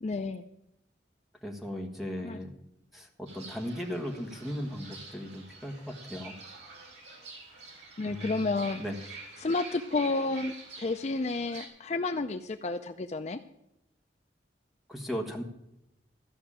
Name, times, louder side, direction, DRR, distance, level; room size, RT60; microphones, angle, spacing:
voice 1, 0.0-0.4 2.2-2.4 8.0-8.8 9.4-13.4, left 3 dB, 35° left, 8 dB, 0.4 m, -31 dB
voice 2, 1.4-2.5 2.9-6.3 8.0-8.5 8.8-9.0 14.9-15.4, equal, ahead, 2 dB, 1.5 m, -37 dB
Fowl / Bird, 3.3-11.7, right 3 dB, 85° right, 4.3 m, -47 dB
13.5 x 5.9 x 8.7 m, 0.83 s
head